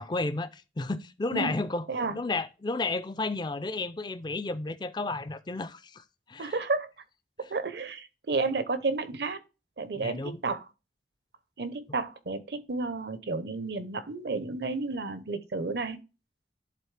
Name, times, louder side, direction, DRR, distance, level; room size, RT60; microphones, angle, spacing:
voice 1, 0.0-1.9 2.1-6.0 6.3-6.6 9.9-10.4, left 3 dB, 25° left, 0.4 m, -32 dB
voice 2, 6.4-6.9 7.4-9.4 9.8-10.6 11.6-16.0, right 3 dB, 70° right, 0.8 m, -31 dB
11.0 x 4.0 x 3.3 m
head